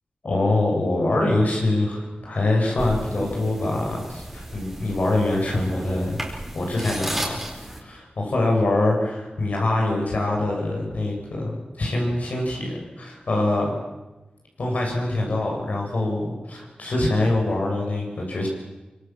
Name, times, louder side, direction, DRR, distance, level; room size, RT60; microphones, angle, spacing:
voice 1, 0.2-6.2 6.5-7.4 7.8-13.8 14.6-18.5, left 2 dB, 70° left, -1 dB, 7.6 m, -24 dB
sound 1, 2.8-7.8, equal, 5° right, 4.6 m, -33 dB
24.5 x 22.5 x 7.7 m, 1.1 s
wide cardioid pair, 100°, 3 cm